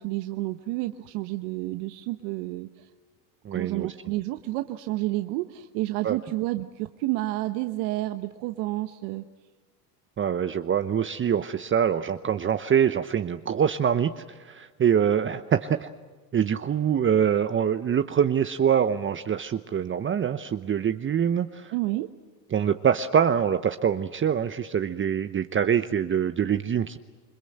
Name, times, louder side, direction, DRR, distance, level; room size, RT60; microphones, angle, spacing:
voice 1, 0.0-2.9 3.5-9.2 21.7-22.1, right 18 dB, 65° right, 8 dB, 1.2 m, -30 dB
voice 2, 3.4-3.9 6.0-6.2 10.2-15.9 16.3-21.7 22.5-27.0, right 8 dB, 25° right, 10 dB, 0.9 m, -24 dB
28.0 x 22.0 x 8.0 m, 1.4 s
supercardioid pair, 95°, 46 cm